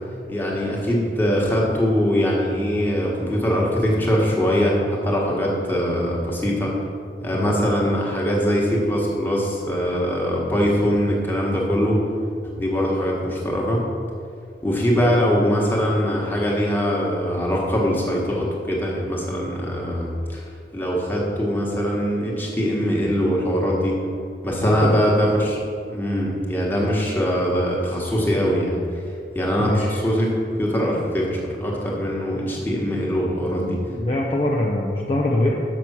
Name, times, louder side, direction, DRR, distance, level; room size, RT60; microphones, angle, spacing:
voice 1, 0.3-6.7 7.2-12.0 12.6-13.8 14.6-20.5 20.7-24.0 24.4-25.6 25.8-28.8 29.3-30.3 30.6-33.8, equal, 10° left, -3 dB, 1.4 m, -22 dB
voice 2, 24.6-25.0 29.6-30.0 33.4-35.6, left 1 dB, 35° left, -1 dB, 0.6 m, -24 dB
7.0 x 6.0 x 6.1 m, 2.4 s
head